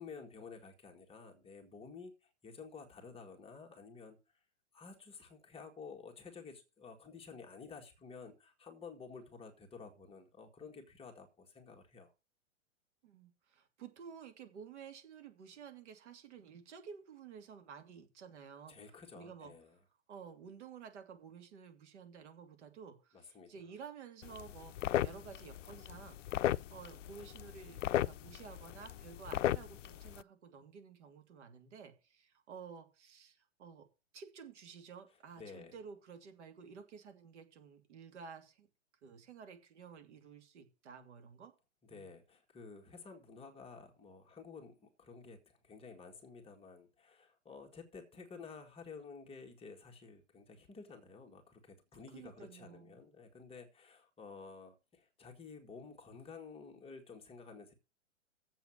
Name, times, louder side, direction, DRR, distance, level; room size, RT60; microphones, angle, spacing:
voice 1, 0.0-4.2 4.7-12.1 18.7-19.8 23.1-23.5 35.4-35.8 41.8-57.7, left 5 dB, 15° left, 2 dB, 1.8 m, -52 dB
voice 2, 13.0-18.8 19.1-19.5 20.1-33.9 34.1-38.7 39.0-41.5 41.9-42.1 52.1-53.0, right 6 dB, 65° right, 7 dB, 2.7 m, -52 dB
sound 1, 24.2-30.2, left 12 dB, 75° left, 0.5 m, -37 dB
7.7 x 7.0 x 7.3 m, 0.31 s
hypercardioid pair, 125°, 37 cm